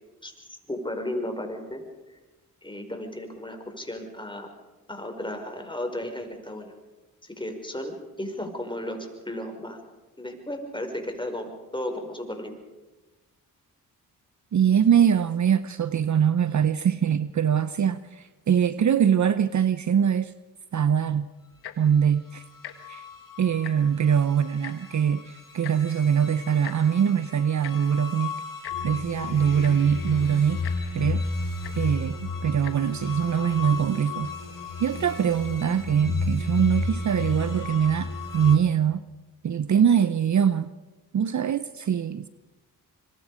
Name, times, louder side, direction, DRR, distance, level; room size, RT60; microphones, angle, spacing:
voice 1, 0.2-1.8 2.1-2.2 2.6-4.5 4.9-6.7 7.2-9.8 10.2-12.6, left 1 dB, 10° left, 5.5 m, -34 dB
voice 2, 14.5-20.3 20.7-21.3 21.8-22.4 22.9-23.0 23.4-28.3 28.8-30.6 30.9-31.2 31.8-34.3 34.8-39.0 39.4-40.7 41.1-42.3, right 8 dB, 50° right, 0.8 m, -23 dB
Tick-tock, 21.5-21.9 22.6-22.7 23.1-23.2 23.5-24.0 24.6-24.7 25.6-25.8 26.6-26.8 27.6-27.7 28.6-28.8 29.3-29.4 29.6-29.9 30.6-30.8 31.6-31.7 32.5-32.7 33.4-33.5, left 12 dB, 85° left, 1.6 m, -40 dB
sound 1, 22.4-38.6, left 3 dB, 55° left, 3.1 m, -33 dB
26.0 x 22.5 x 5.0 m
supercardioid pair, 50°, 38 cm